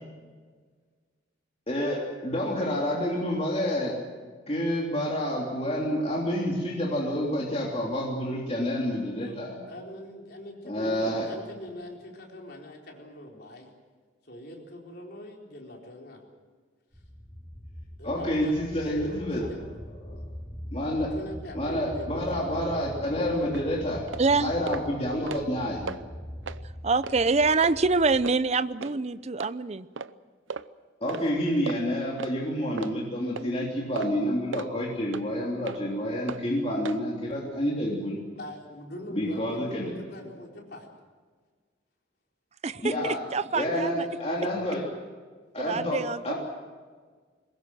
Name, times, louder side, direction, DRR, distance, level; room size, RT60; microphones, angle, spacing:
voice 1, 1.7-4.0 4.5-9.5 10.6-11.3 18.0-19.5 20.1-20.2 20.7-21.1 21.5-24.0 24.4-26.0 31.0-38.2 39.1-39.9 42.8-43.2 43.5-44.9 45.5-46.3, equal, 30° left, -3 dB, 3.3 m, -28 dB
voice 2, 9.7-13.7 14.3-16.2 18.0-19.6 20.0-20.2 20.9-22.2 38.3-40.9 44.5-44.8, left 1 dB, 55° left, 0 dB, 4.3 m, -42 dB
sound 1, 16.9-28.3, equal, 5° left, 3.1 m, -42 dB
sound 2, 23.5-23.6 24.1-24.2 24.7-24.8 25.1-25.6 25.9-26.0 26.4-26.6 27.0-27.2 27.6-27.8 28.2-28.4 28.8-28.9 29.4-29.5 30.0-30.1 30.5-30.7 31.1-31.2 31.7-31.8 32.2-32.3 32.8-32.9 33.4-33.5 34.0-34.1 34.5-34.7 35.1-35.2 35.7-35.8 36.3-36.4 36.8-37.0, right 5 dB, 90° right, 0.7 m, -36 dB
voice 3, 24.2-24.5 26.8-29.9 42.6-44.0 45.6-46.3, right 4 dB, 35° right, 15 dB, 0.6 m, -25 dB
22.5 x 20.0 x 7.7 m, 1.6 s
head